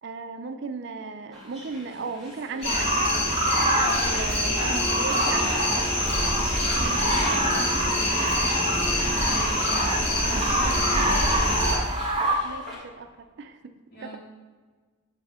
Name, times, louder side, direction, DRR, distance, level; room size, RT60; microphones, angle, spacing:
voice 1, 0.0-3.1 4.0-5.6 12.4-13.1 13.4-13.6 14.0-14.2, right 4 dB, 55° right, 7 dB, 0.4 m, -36 dB
sound 1, 1.3-12.8, equal, ahead, 1.4 m, -40 dB
sound 2, 2.6-11.8, left 1 dB, 30° left, 1.1 m, -26 dB
sound 3, 2.7-12.4, right 1 dB, 25° right, 0.7 m, -27 dB
voice 2, 3.8-5.3 5.9-8.3 9.0-11.2 13.9-14.2, equal, 45° left, -8 dB, 1.4 m, -38 dB
6.9 x 2.7 x 5.6 m, 1.4 s
head